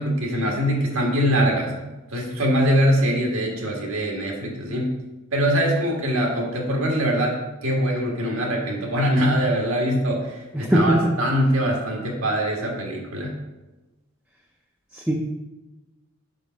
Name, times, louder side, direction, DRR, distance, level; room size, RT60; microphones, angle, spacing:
voice 1, 0.0-1.7 2.1-4.9 5.3-13.3, equal, 90° right, -1 dB, 1.7 m, -23 dB
voice 2, 10.5-11.1 14.9-15.1, right 1 dB, 5° right, -2 dB, 0.5 m, -20 dB
5.4 x 5.1 x 5.1 m, 1.1 s
head